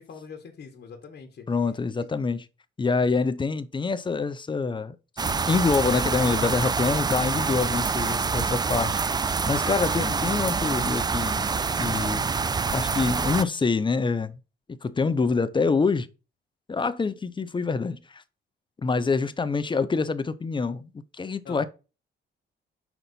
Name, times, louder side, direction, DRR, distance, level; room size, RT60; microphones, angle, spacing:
voice 1, 0.0-1.4 21.4-21.7, left 5 dB, 55° left, 1.5 m, -44 dB
voice 2, 1.5-2.5 2.8-5.0 5.2-11.5 11.8-12.3 12.7-14.4 14.8-16.1 16.7-18.2 18.8-21.7, left 4 dB, 25° left, 0.6 m, -26 dB
sound 1, 5.2-13.4, right 5 dB, 20° right, 0.4 m, -26 dB
5.9 x 4.0 x 5.3 m
cardioid pair, 90°, 20 cm